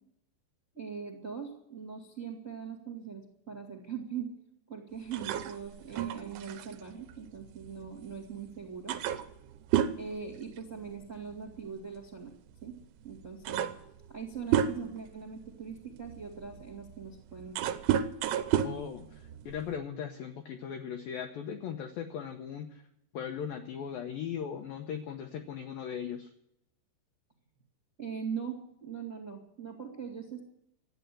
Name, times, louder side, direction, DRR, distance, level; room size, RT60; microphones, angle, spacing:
voice 1, 0.7-4.3 4.7-9.0 10.0-12.3 12.6-12.7 13.0-13.6 14.1-17.7 28.0-30.4, right 6 dB, 40° right, 3 dB, 1.0 m, -41 dB
sound 1, 5.1-8.1 8.5-8.6 8.9-11.1 11.3-11.6 12.6-12.7 13.1-15.1 15.7-19.8, right 10 dB, 80° right, 3.2 m, -32 dB
voice 2, 18.6-22.8 23.1-26.3, left 8 dB, 80° left, 5 dB, 2.1 m, -38 dB
14.0 x 9.3 x 9.9 m, 0.77 s
omnidirectional pair, 5.4 m